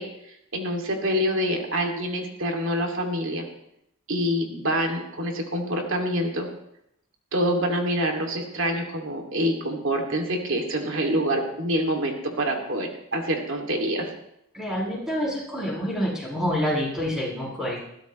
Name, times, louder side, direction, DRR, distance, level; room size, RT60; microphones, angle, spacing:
voice 1, 0.0-3.4 4.1-6.5 7.3-14.1, equal, 60° right, 2 dB, 2.5 m, -26 dB
voice 2, 14.5-17.8, equal, ahead, -6 dB, 7.6 m, -27 dB
21.0 x 16.0 x 3.2 m, 0.78 s
head